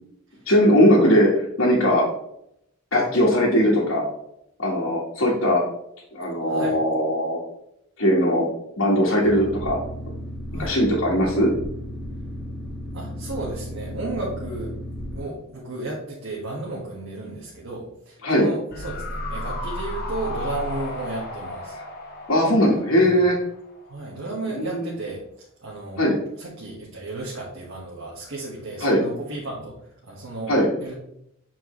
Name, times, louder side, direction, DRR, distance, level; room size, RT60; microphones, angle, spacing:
voice 1, 0.5-2.0 2.9-4.0 4.6-5.6 6.1-7.4 8.0-8.5 8.8-9.8 10.6-11.5 18.2-18.5 22.3-23.3 24.5-24.9 26.0-26.2 28.8-29.0 30.5-30.7, equal, 75° left, -7 dB, 1.5 m, -19 dB
voice 2, 6.5-6.8 10.5-10.8 12.9-14.8 15.1-21.8 23.0-23.2 23.9-26.0 26.4-29.8 30.0-30.5 30.8-30.9, right 2 dB, 70° right, -5 dB, 1.5 m, -34 dB
Boat Water vehicle, 9.2-15.2, equal, ahead, 1.4 m, -34 dB
sound 1, 18.7-24.0 24.2-24.3, left 1 dB, 45° left, 1.1 m, -33 dB
7.6 x 4.6 x 3.1 m, 0.76 s
head